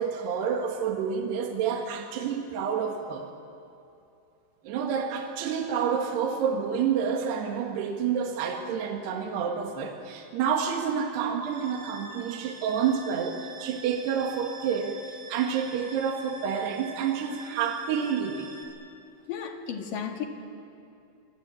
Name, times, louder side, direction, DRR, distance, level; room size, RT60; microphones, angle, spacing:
voice 1, 0.0-3.3 4.7-18.5, right 7 dB, 75° right, 2 dB, 3.7 m, -29 dB
sound 1, 11.4-18.6, right 3 dB, 45° right, 6.6 m, -46 dB
voice 2, 19.3-20.2, left 7 dB, 55° left, 3 dB, 3.4 m, -34 dB
26.0 x 24.5 x 8.7 m, 2.7 s
omnidirectional pair, 5.0 m